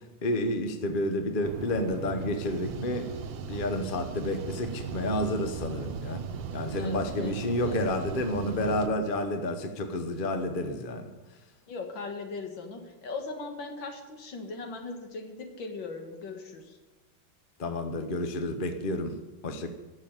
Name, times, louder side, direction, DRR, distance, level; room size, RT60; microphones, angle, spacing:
voice 1, 0.2-3.1 3.5-6.2 6.5-11.1 17.6-19.2 19.4-19.7, left 1 dB, 40° left, 7 dB, 0.8 m, -30 dB
sound 1, 1.4-8.9, right 5 dB, 70° right, 1.5 m, -38 dB
voice 2, 6.7-8.3 11.7-16.8, left 3 dB, 65° left, 4 dB, 2.2 m, -39 dB
12.0 x 7.0 x 8.8 m, 1.2 s
omnidirectional pair, 2.2 m